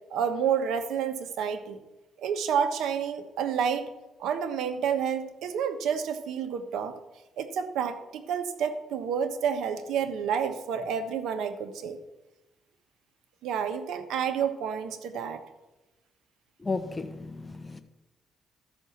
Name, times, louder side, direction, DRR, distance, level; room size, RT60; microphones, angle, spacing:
voice 1, 0.1-1.8 2.2-3.9 4.2-6.9 7.4-12.0 13.4-15.4, right 7 dB, 80° right, 9 dB, 1.2 m, -29 dB
voice 2, 16.6-17.8, left 3 dB, 15° left, 6 dB, 1.1 m, -33 dB
13.5 x 6.1 x 7.2 m, 1.0 s
cardioid pair, 90°, 0 cm